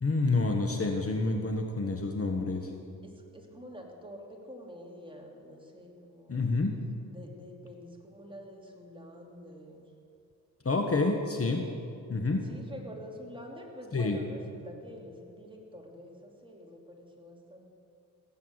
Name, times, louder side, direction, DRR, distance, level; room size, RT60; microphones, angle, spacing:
voice 1, 0.0-2.7 6.3-6.8 10.6-11.7 12.1-12.5 13.9-14.2, left 3 dB, 35° left, 4 dB, 1.3 m, -28 dB
voice 2, 3.0-6.4 7.1-9.9 12.4-17.7, equal, 10° right, 0 dB, 2.9 m, -47 dB
17.0 x 8.4 x 8.0 m, 2.6 s
cardioid pair, 70°, 40 cm